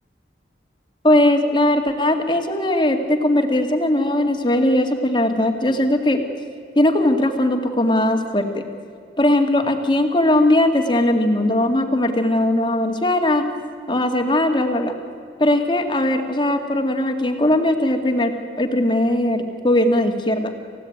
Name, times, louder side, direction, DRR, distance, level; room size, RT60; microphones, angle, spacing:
voice 1, 1.0-6.2 6.8-8.6 9.2-13.4 13.9-14.9 15.4-20.5, left 1 dB, 25° left, 5 dB, 2.3 m, -19 dB
28.5 x 16.0 x 9.4 m, 2.5 s
head